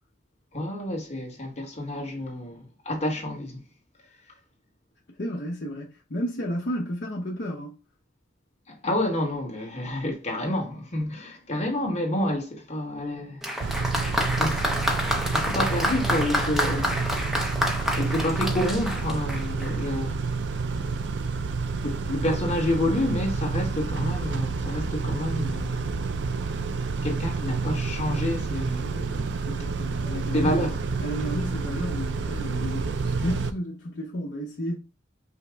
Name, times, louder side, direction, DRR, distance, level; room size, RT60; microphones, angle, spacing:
voice 1, 0.5-3.6 8.7-13.4 14.4-14.6 15.3-17.0 18.0-20.3 21.8-26.0 27.0-29.3 30.3-30.7, left 1 dB, 35° left, 1.2 m, -29 dB
voice 2, 5.2-7.8 29.5-30.7 31.0-34.8, equal, 55° left, 0.8 m, -32 dB
Applause, 13.4-19.9 20.8-20.9, equal, ahead, 0.6 m, -28 dB
Car / Idling / Accelerating revving vroom, 13.6-33.5, right 4 dB, 65° right, 0.4 m, -29 dB
5.6 x 2.0 x 4.5 m
head